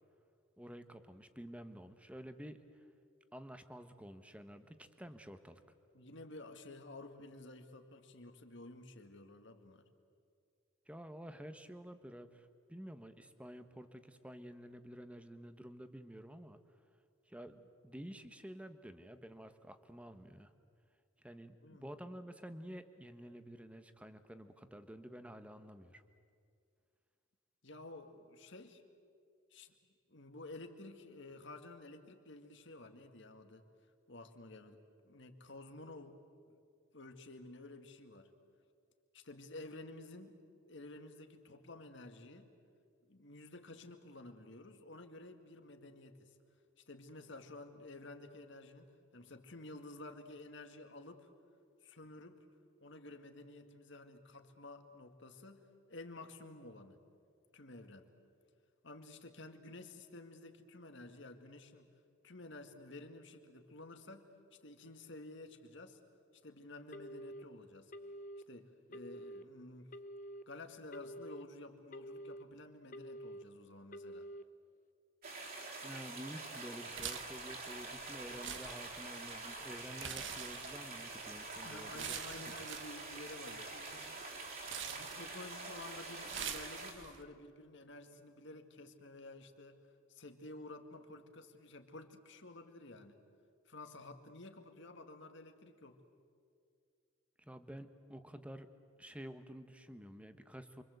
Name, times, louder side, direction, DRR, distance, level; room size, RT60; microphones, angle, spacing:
voice 1, 0.6-2.8 3.3-5.6 10.9-16.6 17.3-20.5 21.2-26.0 75.8-82.5 97.4-98.7 99.0-100.8, equal, 5° right, 9 dB, 1.2 m, -50 dB
voice 2, 5.9-9.9 21.6-21.9 27.6-28.8 29.5-29.7 30.1-33.6 34.1-36.3 36.9-38.3 39.1-40.4 40.7-42.5 43.0-46.3 46.8-51.3 51.8-52.5 52.8-57.0 57.5-58.1 58.8-61.9 62.2-66.0 66.4-67.9 68.5-69.9 70.5-74.3 81.6-84.2 84.7-89.8 90.1-93.2 93.7-96.0, left 2 dB, 60° left, 6 dB, 2.1 m, -52 dB
Telephone, 66.9-67.4 67.9-68.4 68.9-69.4 69.9-70.4 70.9-71.4 71.9-72.4 72.9-73.4 73.9-74.4, equal, 40° left, 0.8 m, -48 dB
sound 1, 75.2-86.9, right 3 dB, 45° right, 4.3 m, -46 dB
sound 2, 76.9-87.2, right 8 dB, 60° right, 1.4 m, -47 dB
28.5 x 24.5 x 8.0 m, 2.3 s
head